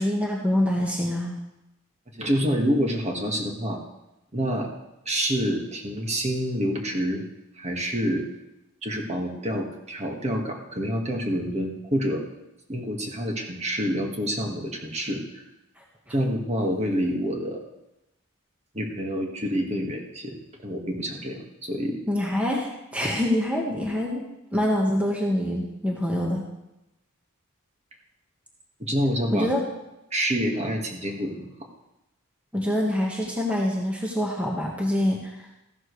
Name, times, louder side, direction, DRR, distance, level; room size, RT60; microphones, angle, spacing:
voice 1, 0.0-1.4 22.1-24.2 24.5-26.4 29.3-29.6 32.5-35.4, left 1 dB, 5° right, -2 dB, 1.4 m, -25 dB
voice 2, 2.1-3.8 4.3-4.7 5.0-7.2 7.6-8.2 8.8-12.2 12.7-15.4 16.1-17.6 18.7-20.3 20.6-22.0 28.8-29.5 30.1-31.5, equal, 30° right, 1 dB, 1.7 m, -27 dB
15.0 x 12.0 x 3.2 m, 0.92 s
head